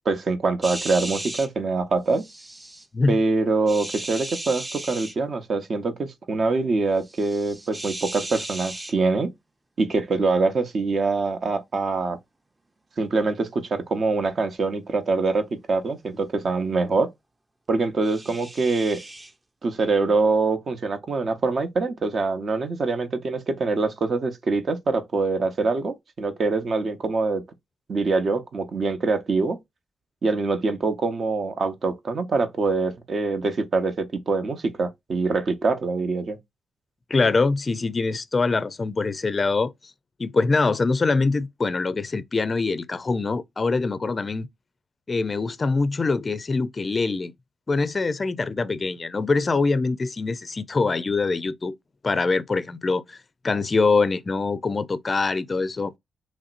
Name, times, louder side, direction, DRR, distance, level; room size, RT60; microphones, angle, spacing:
voice 1, 0.1-2.2 3.1-9.3 9.8-12.2 13.0-17.1 17.7-19.0 19.6-27.4 27.9-29.6 30.2-36.4, right 3 dB, 55° right, 0.8 m, -24 dB
sound 1, 0.6-1.5 2.1-2.9 3.7-5.2 7.0-8.9 18.0-19.3, right 1 dB, 20° right, 0.6 m, -36 dB
voice 2, 37.1-39.7 40.2-44.5 45.1-47.3 47.7-51.8 52.0-53.2 53.4-55.9, left 3 dB, 35° left, 0.4 m, -24 dB
3.1 x 2.7 x 2.4 m
cardioid pair, 65°, 0 cm